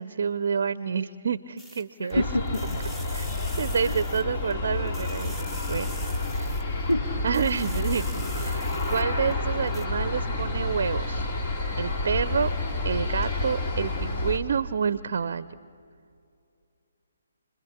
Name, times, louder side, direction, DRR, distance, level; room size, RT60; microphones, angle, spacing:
voice 1, 0.0-2.2 3.1-3.2 3.6-5.4 5.7-5.9 6.3-6.6 7.2-11.3 11.8-12.5 12.8-15.5, right 6 dB, 55° right, 15 dB, 0.6 m, -28 dB
sound 1, 1.6-2.1 2.5-4.5 4.9-6.9 7.3-9.3 9.7-9.8, equal, 10° left, 1.2 m, -45 dB
voice 2, 2.0-2.8 3.1-3.3 3.8-4.0 6.9-7.1, left 1 dB, 85° left, 4 dB, 2.5 m, -28 dB
Aircraft, 2.1-14.4, left 2 dB, 40° left, 2.3 m, -29 dB
29.0 x 21.5 x 7.4 m, 2.5 s
figure-of-eight pair, 140°, 0 cm